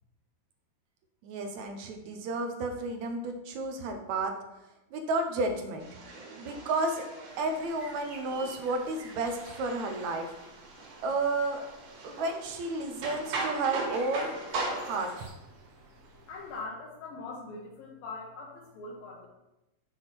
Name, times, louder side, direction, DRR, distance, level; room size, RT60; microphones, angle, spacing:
voice 1, 1.2-4.4 4.9-5.9 6.4-7.1 7.4-10.3 11.0-11.6 12.0-14.3 14.9-15.3, right 2 dB, 70° right, 5 dB, 1.9 m, -32 dB
sound 1, 5.8-15.3, right 3 dB, 85° right, 3.7 m, -40 dB
sound 2, 7.3-16.6, right 2 dB, 55° right, 1.7 m, -53 dB
voice 2, 16.3-19.3, left 3 dB, 85° left, -3 dB, 2.9 m, -42 dB
6.7 x 6.2 x 6.1 m, 0.95 s
omnidirectional pair, 4.0 m